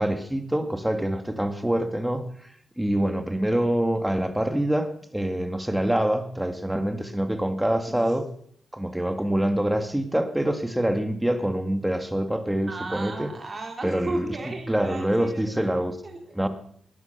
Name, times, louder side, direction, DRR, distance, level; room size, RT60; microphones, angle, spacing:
voice 1, 0.0-2.3 2.8-8.3 8.7-13.3 13.8-14.3 14.7-16.0 16.3-16.5, right 1 dB, 5° right, 8 dB, 2.2 m, -25 dB
voice 2, 12.7-15.4 16.0-16.3, right 3 dB, 35° right, 1 dB, 3.4 m, -35 dB
19.5 x 10.5 x 6.8 m, 0.65 s
cardioid pair, 70°, 0 cm